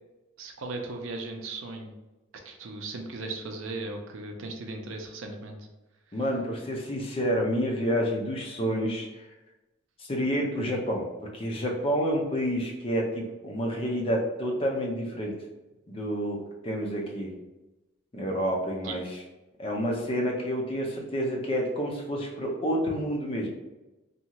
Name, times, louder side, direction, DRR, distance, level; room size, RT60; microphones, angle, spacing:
voice 1, 0.4-1.9 2.4-5.6 18.8-18.9, right 3 dB, 75° right, 3 dB, 0.5 m, -37 dB
voice 2, 6.1-9.1 10.0-11.1 11.3-15.3 15.9-17.3 18.1-19.2 19.6-23.5, equal, 25° left, -1 dB, 0.5 m, -29 dB
2.7 x 2.3 x 2.9 m, 1.0 s
head